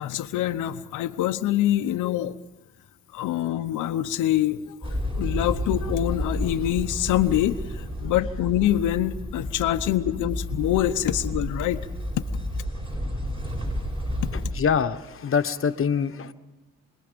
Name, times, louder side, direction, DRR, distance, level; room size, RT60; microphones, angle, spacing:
voice 1, 0.0-2.4 3.1-11.9, left 13 dB, 90° left, 7 dB, 0.9 m, -25 dB
sound 1, 4.8-14.5, equal, 20° right, 7.9 m, -31 dB
voice 2, 14.5-16.3, left 6 dB, 45° left, 9 dB, 1.3 m, -24 dB
27.5 x 20.5 x 5.2 m, 1.1 s
cardioid pair, 90°, 30 cm